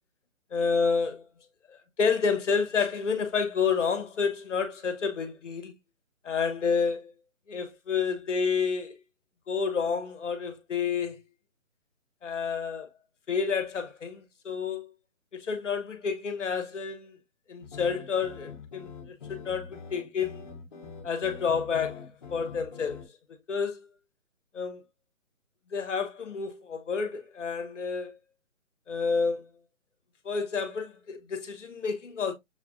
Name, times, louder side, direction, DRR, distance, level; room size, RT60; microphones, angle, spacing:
voice 1, 0.5-1.2 1.7-5.7 6.2-7.1 7.5-8.9 9.5-11.2 12.2-12.9 13.3-14.9 15.3-17.1 17.5-20.4 21.0-23.0 23.5-23.9 24.5-24.8 25.7-28.2 28.9-29.5 30.2-32.3, left 5 dB, 60° left, 1.1 m, -29 dB
sound 1, 17.6-23.0, left 6 dB, 35° left, 1.2 m, -44 dB
6.9 x 2.5 x 2.6 m
hypercardioid pair, 160°, 42 cm